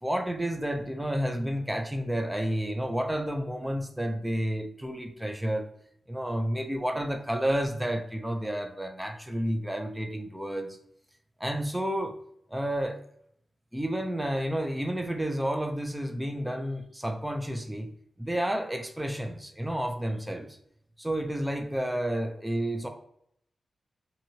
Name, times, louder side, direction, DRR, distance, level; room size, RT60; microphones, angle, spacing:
voice 1, 0.0-5.7 6.1-10.7 11.4-12.2 12.5-13.0 13.7-17.9 18.2-20.6 21.0-22.9, right 1 dB, 5° right, 5 dB, 0.4 m, -30 dB
2.8 x 2.7 x 2.7 m, 0.70 s
wide cardioid pair, 110°, 0 cm